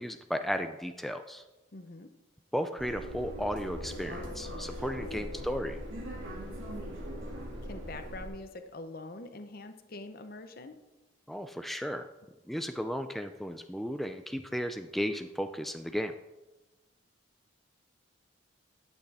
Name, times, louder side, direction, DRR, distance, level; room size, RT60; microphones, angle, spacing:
voice 1, 0.0-1.4 2.5-5.8 11.3-12.1 12.5-16.1, equal, ahead, 7 dB, 0.4 m, -34 dB
voice 2, 1.7-2.1 5.1-5.3 7.6-10.8, left 2 dB, 50° left, 7 dB, 0.8 m, -44 dB
sound 1, 2.8-8.3, equal, 90° right, 2.3 m, -40 dB
12.0 x 8.3 x 4.2 m, 1.0 s
head